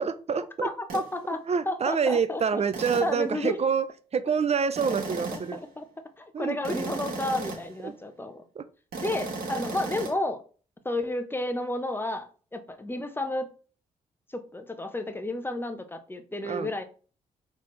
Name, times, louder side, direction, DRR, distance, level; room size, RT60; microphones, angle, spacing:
voice 1, 0.0-1.0 1.5-3.9 4.1-5.6 6.3-7.0 7.8-7.9 8.6-8.7 16.4-16.7, right 6 dB, 40° right, 12 dB, 0.6 m, -27 dB
voice 2, 0.6-1.4 1.7-2.6 3.0-3.6 5.1-5.9 6.2-8.4 9.0-10.4 10.8-13.5 14.3-16.8, left 1 dB, 15° left, 7 dB, 0.9 m, -32 dB
sound 1, 0.9-1.1 2.7-3.2 4.8-5.6 6.6-7.8 8.9-10.1, right 3 dB, 65° right, 1.4 m, -35 dB
4.2 x 3.4 x 3.2 m, 0.38 s
supercardioid pair, 45°, 16 cm